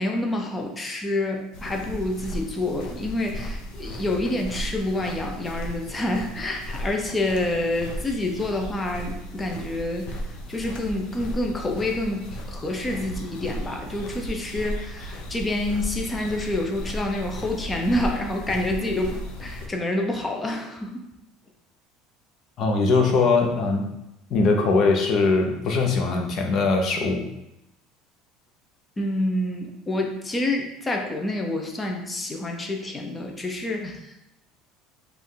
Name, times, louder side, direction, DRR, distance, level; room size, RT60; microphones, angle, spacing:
voice 1, 0.0-10.2 10.5-21.1 29.0-34.3, left 1 dB, 15° left, 2 dB, 0.7 m, -28 dB
sound 1, 1.5-19.7, equal, 75° left, 0.8 m, -35 dB
voice 2, 22.6-23.9 24.3-27.3, left 3 dB, 45° left, 2 dB, 0.9 m, -21 dB
5.2 x 2.6 x 3.9 m, 0.88 s
cardioid pair, 125°, 0 cm